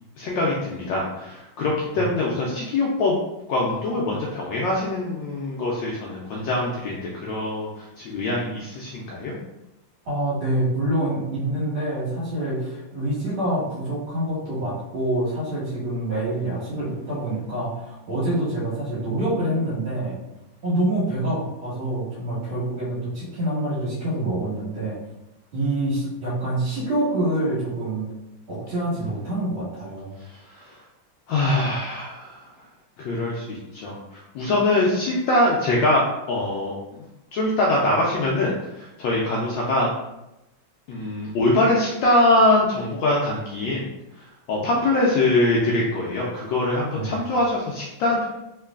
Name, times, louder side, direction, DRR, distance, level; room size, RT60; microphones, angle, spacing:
voice 1, 0.2-3.2 3.5-9.4 30.2-30.7 31.3-32.5 33.0-36.7 37.3-39.9 40.9-43.9 44.2-48.3, left 2 dB, 75° left, -4 dB, 1.2 m, -23 dB
voice 2, 10.1-20.2 20.6-25.0 25.5-28.1 28.5-30.1 46.9-47.2, right 1 dB, 75° right, -11 dB, 2.2 m, -26 dB
3.7 x 3.2 x 2.3 m, 0.92 s
omnidirectional pair, 2.3 m